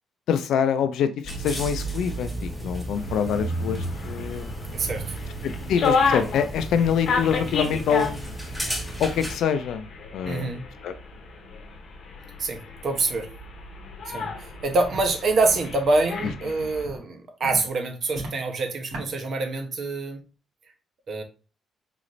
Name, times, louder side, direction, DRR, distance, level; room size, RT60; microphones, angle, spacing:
voice 1, 0.3-1.1 1.4-4.6 5.4-8.3 9.0-9.8 10.1-10.5 10.8-10.9 16.6-16.7 17.4-17.5, left 7 dB, 80° left, 0.4 m, -25 dB
sound 1, 1.2-9.4, right 2 dB, ahead, 1.1 m, -33 dB
sound 2, 3.0-16.9, left 4 dB, 60° left, 0.9 m, -32 dB
voice 2, 4.7-5.2 10.2-10.6 12.4-13.3 14.1-20.2 21.1-21.2, right 3 dB, 55° right, 0.9 m, -26 dB
Walk footsteps, 14.2-14.4 14.8-15.0 15.5-15.7 16.2-16.3 16.8-17.1 17.5-17.7 18.1-18.4 18.9-19.1, right 2 dB, 80° right, 1.6 m, -36 dB
3.9 x 2.5 x 3.0 m
cardioid pair, 90°, 0 cm